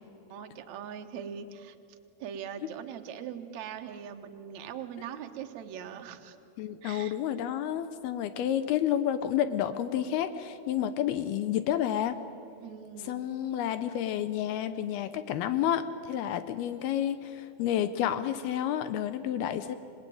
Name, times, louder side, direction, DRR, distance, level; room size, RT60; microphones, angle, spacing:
voice 1, 0.3-1.8 2.2-6.4 6.8-7.2 12.6-13.2, right 8 dB, 65° right, 6 dB, 1.8 m, -41 dB
voice 2, 6.6-12.2 13.0-19.8, left 10 dB, 75° left, 11 dB, 2.6 m, -30 dB
26.5 x 21.0 x 9.2 m, 2.7 s
omnidirectional pair, 4.8 m